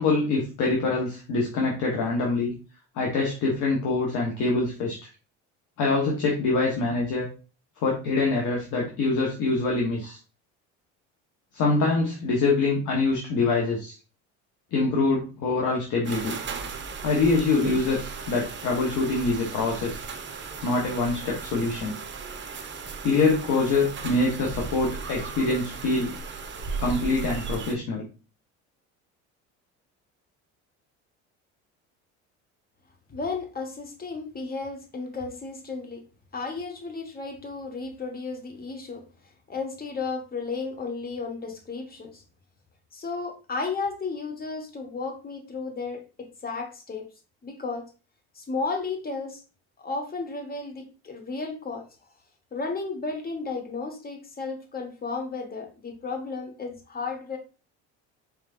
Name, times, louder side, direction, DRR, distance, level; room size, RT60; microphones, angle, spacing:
voice 1, 0.0-2.5 2.9-5.0 5.8-7.3 7.8-10.2 11.5-14.0 14.7-16.3 17.0-20.0 20.6-22.0 23.0-26.1 26.8-28.0, left 3 dB, 60° left, -1 dB, 1.2 m, -25 dB
sound 1, 16.0-27.7, right 5 dB, 30° right, 0.9 m, -36 dB
voice 2, 33.1-36.0 36.3-39.0 39.5-42.2 42.9-47.1 47.4-47.9 48.3-49.4 49.8-51.8 52.5-57.4, left 4 dB, 25° left, 4 dB, 1.3 m, -33 dB
4.8 x 3.5 x 2.5 m, 0.33 s
supercardioid pair, 80°, 35 cm